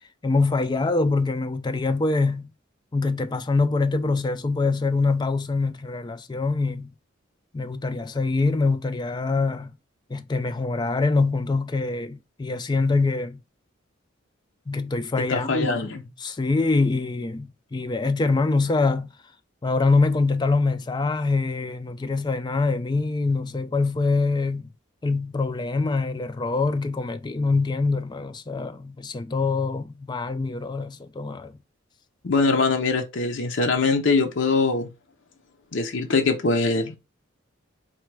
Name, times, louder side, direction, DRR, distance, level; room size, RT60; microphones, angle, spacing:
voice 1, 0.2-2.5 2.9-6.9 7.5-9.7 10.1-13.4 14.7-15.9 16.2-19.1 19.6-24.7 25.0-31.6, left 3 dB, 20° left, 0.3 m, -24 dB
voice 2, 15.3-16.0 32.2-34.9 35.7-37.0, left 3 dB, 60° left, 0.6 m, -22 dB
4.4 x 2.2 x 4.5 m
head